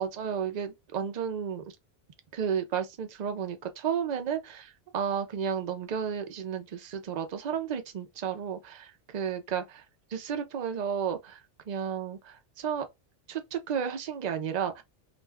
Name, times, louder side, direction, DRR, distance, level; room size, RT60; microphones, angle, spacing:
voice 1, 0.0-1.8 2.3-9.8 10.1-12.8 13.3-14.8, right 7 dB, 55° right, 0.5 m, -32 dB
2.5 x 2.2 x 3.3 m
omnidirectional pair, 1.2 m